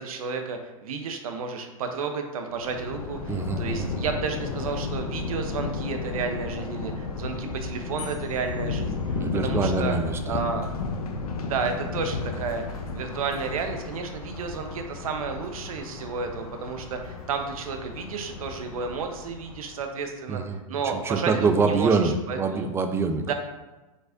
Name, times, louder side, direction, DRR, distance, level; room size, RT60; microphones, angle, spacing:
voice 1, 0.0-9.1 9.4-10.0 10.3-10.7 11.4-21.9 22.3-22.7 23.3-23.4, right 5 dB, 75° right, 5 dB, 0.8 m, -32 dB
Thunder, 2.5-19.9, left 4 dB, 85° left, 0.7 m, -33 dB
voice 2, 3.3-3.9 9.1-10.4 20.3-20.6 20.9-23.3, right 4 dB, 15° right, 7 dB, 0.4 m, -25 dB
sound 1, 8.0-9.8, left 8 dB, 40° left, 1.1 m, -47 dB
5.2 x 4.0 x 2.5 m, 1.1 s
hypercardioid pair, 115°, 18 cm